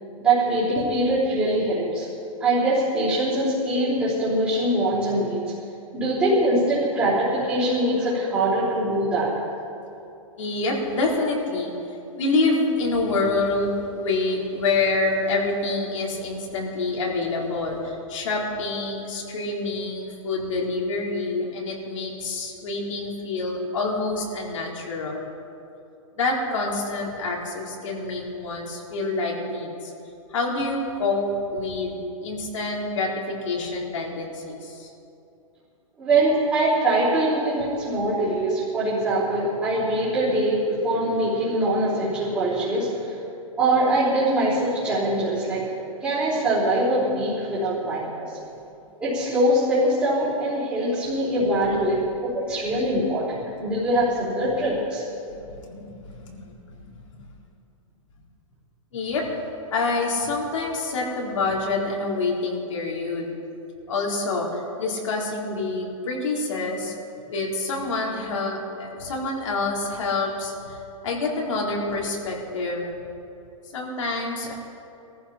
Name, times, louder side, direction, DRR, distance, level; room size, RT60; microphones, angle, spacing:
voice 1, 0.2-2.1 2.4-5.5 5.9-9.3 36.0-43.2 43.6-45.7 46.0-48.4 49.0-55.0, right 1 dB, 10° right, -13 dB, 3.5 m, -23 dB
voice 2, 10.4-11.7 12.1-25.3 26.2-29.9 30.3-34.9 55.3-55.4 55.6-56.4 56.9-57.0 58.9-59.4 59.7-63.3 63.9-66.9 67.3-70.8 71.0-72.9 73.7-74.5, left 3 dB, 65° left, -2 dB, 4.0 m, -27 dB
22.0 x 14.5 x 4.3 m, 2.7 s
hypercardioid pair, 180°, 18 cm